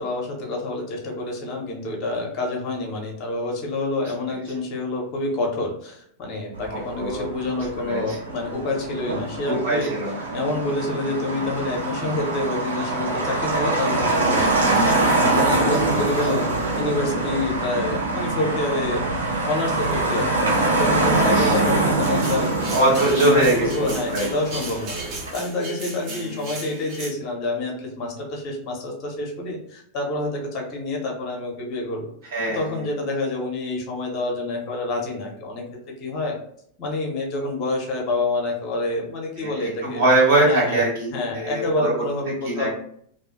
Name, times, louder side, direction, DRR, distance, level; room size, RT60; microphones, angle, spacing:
voice 1, 0.0-9.9 10.3-14.5 15.3-19.1 19.5-22.5 23.0-32.1 32.5-35.6 36.0-36.4 36.8-40.0 40.5-40.8 41.1-42.7, left 2 dB, 35° left, 0 dB, 0.8 m, -27 dB
Motor vehicle (road), 6.5-25.3, right 2 dB, 75° right, 1.2 m, -24 dB
voice 2, 6.7-7.2 7.5-8.2 9.4-10.2 15.6-16.0 21.2-21.6 22.7-24.3 26.1-26.5 32.2-32.8 39.4-42.0 42.4-42.7, right 2 dB, 55° right, -6 dB, 1.4 m, -23 dB
sound 1, 22.0-27.1, right 2 dB, 40° right, 0.7 m, -35 dB
2.6 x 2.4 x 2.5 m, 0.67 s
figure-of-eight pair, 90°, 0 cm